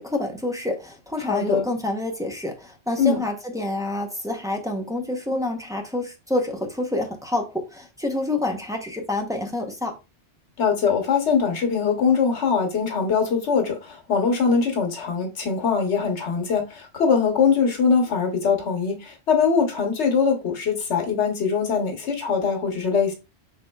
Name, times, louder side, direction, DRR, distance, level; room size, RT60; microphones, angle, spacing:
voice 1, 0.0-10.0, left 2 dB, 5° right, 0.6 m, -27 dB
voice 2, 1.2-1.7 3.0-3.2 10.6-23.1, left 6 dB, 90° left, 1.3 m, -22 dB
5.8 x 3.4 x 2.2 m
omnidirectional pair, 1.1 m